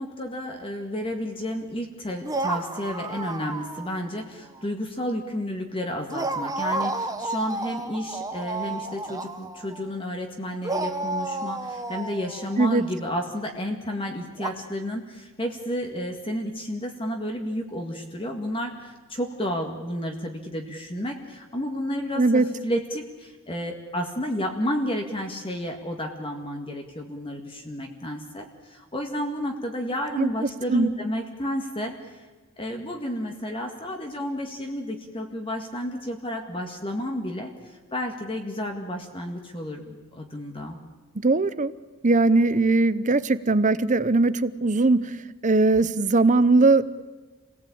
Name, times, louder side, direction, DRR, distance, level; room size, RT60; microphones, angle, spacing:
voice 1, 0.0-32.3 32.6-40.8, equal, 25° left, 3 dB, 1.9 m, -31 dB
sound 1, 2.2-4.1 4.4-4.6 6.1-10.0 10.6-13.1 14.4-14.5, right 2 dB, 15° right, 1.1 m, -31 dB
voice 2, 22.1-22.5 30.2-30.9 41.1-41.7 42.0-45.2 45.4-46.9, right 3 dB, 35° right, 15 dB, 0.8 m, -20 dB
28.5 x 18.0 x 8.8 m, 1.3 s
head